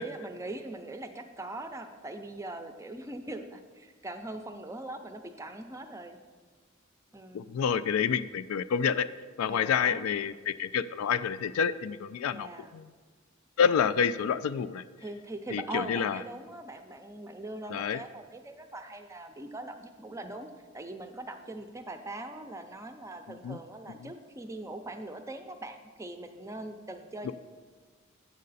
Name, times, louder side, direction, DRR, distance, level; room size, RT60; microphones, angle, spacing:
voice 1, 0.0-6.2 7.1-7.5 9.5-10.1 12.3-12.8 13.8-13.9 15.0-27.3, right 2 dB, 15° right, 7 dB, 0.4 m, -41 dB
voice 2, 7.3-9.1 9.4-12.5 12.7-12.9 13.6-14.8 15.5-16.2 17.7-18.0 23.4-23.6 27.2-27.3, left 7 dB, 85° left, 14 dB, 0.3 m, -28 dB
8.3 x 6.5 x 4.0 m, 1.5 s
head